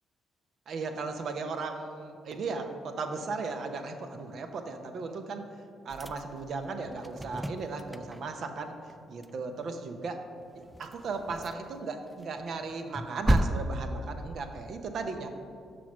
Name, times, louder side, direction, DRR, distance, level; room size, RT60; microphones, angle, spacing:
voice 1, 0.7-5.4 5.8-8.8 9.1-10.2 10.5-15.3, right 4 dB, 65° right, 6 dB, 0.7 m, -36 dB
sound 1, 5.9-8.4 8.7-9.0 9.2-9.3 9.6-9.7 10.4-11.8 12.2-14.6, right 1 dB, 5° right, 0.4 m, -33 dB
6.1 x 4.6 x 6.1 m, 2.3 s
supercardioid pair, 55°, 0 cm